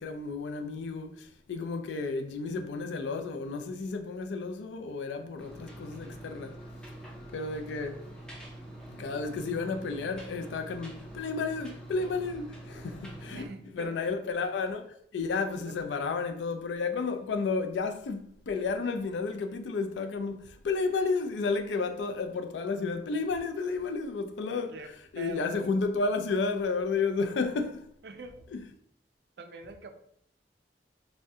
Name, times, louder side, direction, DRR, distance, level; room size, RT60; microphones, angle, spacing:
voice 1, 0.0-6.6 7.3-8.0 8.9-13.5 13.7-14.9 15.1-27.8 28.5-28.6, left 4 dB, 85° left, 0.4 m, -32 dB
sound 1, 5.4-13.5, right 1 dB, 5° left, 0.5 m, -45 dB
voice 2, 13.3-14.0 15.6-16.1 24.7-25.7 28.0-28.4 29.4-29.9, right 3 dB, 65° right, 0.4 m, -44 dB
2.7 x 2.1 x 3.4 m
head